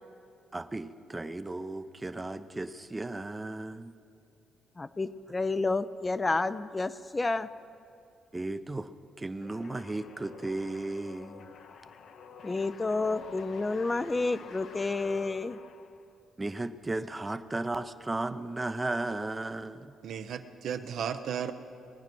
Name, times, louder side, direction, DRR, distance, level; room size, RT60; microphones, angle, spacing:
voice 1, 0.5-3.9 8.3-8.9 9.2-11.5 16.4-19.9, right 2 dB, 20° right, 11 dB, 0.6 m, -35 dB
voice 2, 4.8-7.5 12.4-15.6, left 3 dB, 25° left, 13 dB, 0.5 m, -30 dB
sound 1, 9.4-16.2, left 6 dB, 70° left, 0.9 m, -48 dB
voice 3, 20.0-21.5, right 8 dB, 70° right, 9 dB, 0.7 m, -34 dB
20.0 x 9.2 x 6.1 m, 2.5 s
cardioid pair, 90°, 0 cm